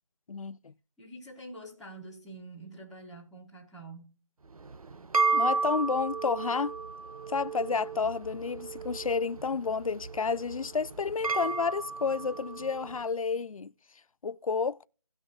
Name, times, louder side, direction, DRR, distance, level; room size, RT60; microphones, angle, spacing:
voice 1, 0.3-0.7 5.3-6.7 7.3-13.7 14.2-14.9, left 5 dB, 75° left, 0.6 m, -30 dB
voice 2, 1.0-4.1, right 2 dB, ahead, 0.6 m, -46 dB
sound 1, 4.5-13.0, right 4 dB, 90° right, 0.8 m, -33 dB
17.5 x 6.3 x 2.4 m
figure-of-eight pair, 170°, 18 cm